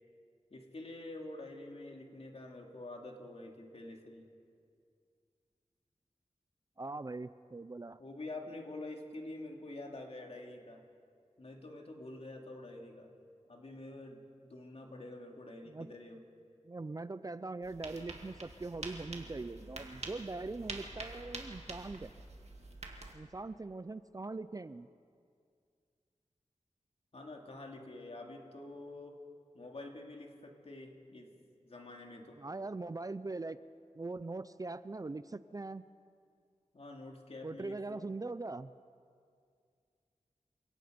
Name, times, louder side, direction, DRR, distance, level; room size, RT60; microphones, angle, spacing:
voice 1, 0.5-4.3 8.0-10.8 11.4-13.1 13.4-16.2 27.1-29.2 29.5-31.3 31.7-32.4 36.7-38.0, left 2 dB, 55° left, 1 dB, 2.7 m, -47 dB
voice 2, 6.8-8.0 15.7-15.9 16.6-22.1 23.1-24.9 32.4-33.6 33.9-35.8 37.4-38.7, right 3 dB, 30° right, 14 dB, 0.5 m, -41 dB
sound 1, 17.6-23.1, right 2 dB, 60° right, 2.2 m, -46 dB
28.5 x 17.5 x 5.2 m, 2.3 s
wide cardioid pair, 80°, 12 cm